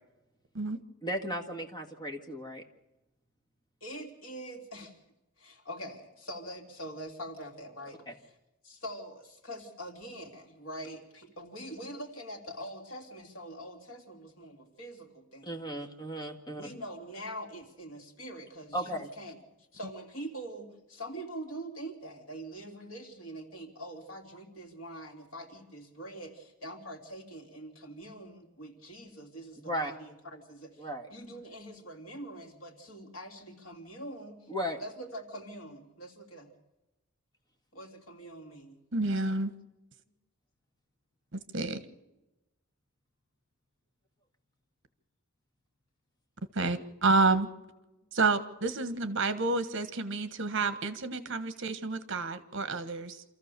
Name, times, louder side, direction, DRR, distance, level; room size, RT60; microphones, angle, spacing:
voice 1, 1.0-2.6 8.1-8.2 15.4-16.7 18.7-19.1 29.6-29.9 30.8-31.1 34.5-34.8, equal, 20° left, 3 dB, 1.8 m, -35 dB
voice 2, 3.8-5.0 5.4-8.1 8.6-15.5 16.5-19.4 19.7-34.5 34.8-36.5 37.7-38.8 48.0-48.1, right 1 dB, 65° left, 2 dB, 3.2 m, -44 dB
voice 3, 38.9-39.5 41.3-41.8 46.5-47.5 48.1-53.2, right 3 dB, 60° right, 11 dB, 1.4 m, -29 dB
27.0 x 14.5 x 6.9 m, 1.0 s
head